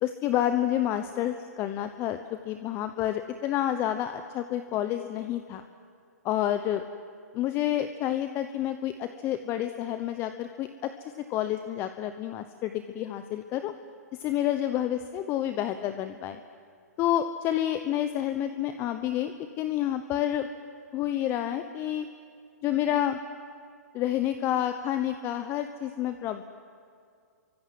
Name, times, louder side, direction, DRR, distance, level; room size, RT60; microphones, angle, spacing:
voice 1, 0.0-5.6 6.2-6.8 7.3-10.9 11.3-13.7 14.1-16.4 17.0-20.5 20.9-22.1 22.6-23.2 23.9-26.4, left 11 dB, 25° left, 9 dB, 1.0 m, -29 dB
29.0 x 24.5 x 7.8 m, 2.3 s
hypercardioid pair, 130°, 9 cm